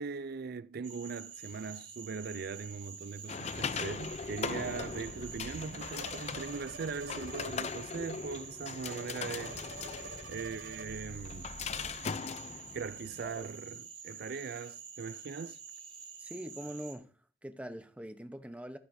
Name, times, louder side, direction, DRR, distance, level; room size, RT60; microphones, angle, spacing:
voice 1, 0.0-9.6 10.3-11.5 12.7-15.6, right 5 dB, 55° right, 0.4 m, -40 dB
Cricket / Frog, 0.8-16.9, right 6 dB, 35° right, 3.6 m, -48 dB
sound 1, 3.3-13.3, left 5 dB, 35° left, 0.4 m, -40 dB
sound 2, 3.9-7.6 7.8-8.1 8.4-8.5 8.8-9.1 9.4-11.9, right 2 dB, 80° right, 1.4 m, -49 dB
voice 2, 16.2-17.1 17.4-18.8, equal, 5° right, 0.8 m, -43 dB
14.5 x 9.4 x 2.7 m
head